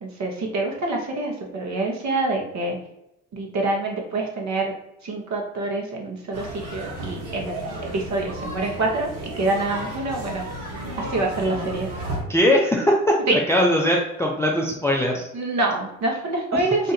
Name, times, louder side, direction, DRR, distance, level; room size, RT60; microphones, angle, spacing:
voice 1, 0.0-2.8 3.3-4.7 5.0-9.1 9.4-10.4 11.0-11.9 13.3-13.4 15.3-16.9, right 2 dB, 40° right, 0 dB, 1.2 m, -26 dB
sound 1, 6.3-12.2, right 1 dB, 65° right, 1.3 m, -33 dB
voice 2, 12.3-15.3 16.5-16.6, left 1 dB, 5° left, -1 dB, 0.5 m, -20 dB
2.8 x 2.5 x 4.1 m, 0.83 s
hypercardioid pair, 65°, 42 cm